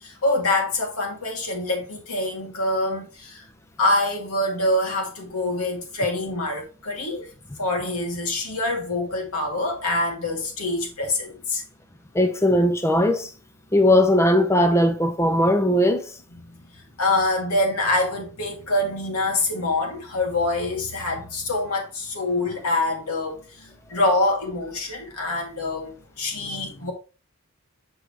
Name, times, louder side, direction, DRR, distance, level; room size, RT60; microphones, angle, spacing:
voice 1, 0.0-3.4 3.8-7.3 7.6-11.6 16.4-26.9, left 2 dB, 85° left, 2.5 m, -25 dB
voice 2, 12.1-13.3 13.7-16.2, left 1 dB, 10° left, 0.5 m, -19 dB
6.5 x 6.1 x 3.3 m
head